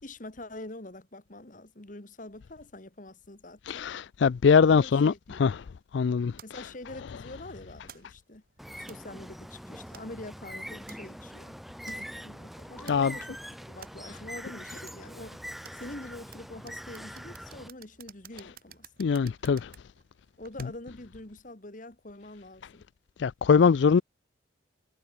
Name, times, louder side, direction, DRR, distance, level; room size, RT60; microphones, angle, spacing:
voice 1, 0.0-3.9 4.6-5.4 6.4-8.4 8.8-11.6 11.9-13.4 13.7-15.5 15.7-18.9 20.4-22.8, left 2 dB, 45° left, 2.0 m, -45 dB
voice 2, 3.7-5.1 5.4-5.5 5.9-6.6 12.9-13.1 19.0-19.7 23.2-24.0, left 6 dB, 70° left, 0.4 m, -22 dB
sound 1, 6.4-21.1, right 6 dB, 50° right, 6.0 m, -55 dB
Bird, 8.6-17.7, equal, ahead, 4.3 m, -43 dB
head